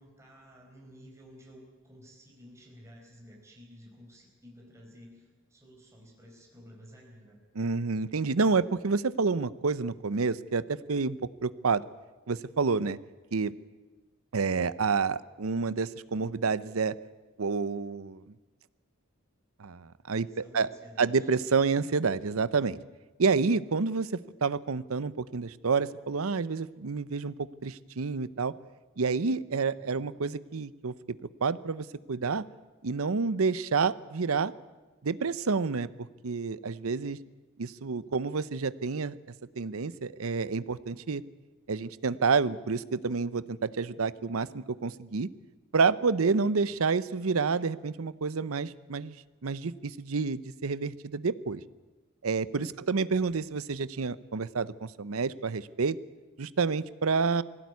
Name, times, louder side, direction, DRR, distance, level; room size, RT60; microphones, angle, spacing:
voice 1, 0.0-7.4 20.0-21.3 29.7-30.1 52.7-53.1, equal, 15° right, -1 dB, 4.6 m, -53 dB
voice 2, 7.6-11.8 12.3-13.0 13.3-13.5 14.3-16.9 17.4-18.2 19.6-20.7 21.0-22.8 23.2-28.5 29.0-30.9 31.4-32.4 32.8-34.5 35.0-35.9 36.2-37.2 37.6-39.1 39.6-41.2 41.7-45.3 45.7-49.1 49.4-51.6 52.2-56.0 56.4-57.4, right 4 dB, 85° right, 16 dB, 0.7 m, -29 dB
21.0 x 17.0 x 9.5 m, 1.2 s
head